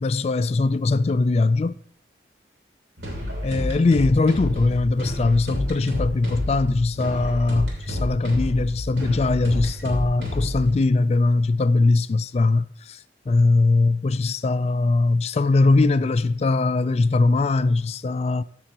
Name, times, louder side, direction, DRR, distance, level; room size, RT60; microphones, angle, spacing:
voice 1, 0.0-1.8 3.4-13.0 13.3-18.4, left 3 dB, 35° left, 0.3 m, -21 dB
sound 1, 3.0-10.7, left 1 dB, 75° right, 3.1 m, -29 dB
14.0 x 6.9 x 2.9 m
head